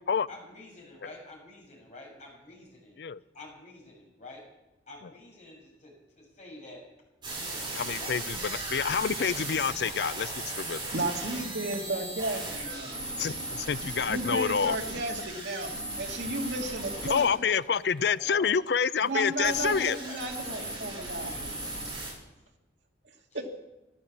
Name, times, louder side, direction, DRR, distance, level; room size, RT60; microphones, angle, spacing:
voice 1, 0.3-3.0 3.3-4.4 4.9-6.8 7.4-8.2 8.4-8.6 11.7-14.4 16.7-18.5 20.0-21.6 23.3-23.4, left 2 dB, 40° left, -1 dB, 6.4 m, -49 dB
sound 1, 7.2-22.1, right 2 dB, 25° right, 7.4 m, -37 dB
voice 2, 7.7-10.9 13.2-14.8 17.1-20.0, left 6 dB, 65° left, 17 dB, 0.4 m, -28 dB
voice 3, 10.9-13.0 14.1-15.7 16.0-17.3 19.0-21.3 23.3-23.4, right 2 dB, 75° right, 1 dB, 2.2 m, -33 dB
15.0 x 12.5 x 7.2 m, 0.98 s
head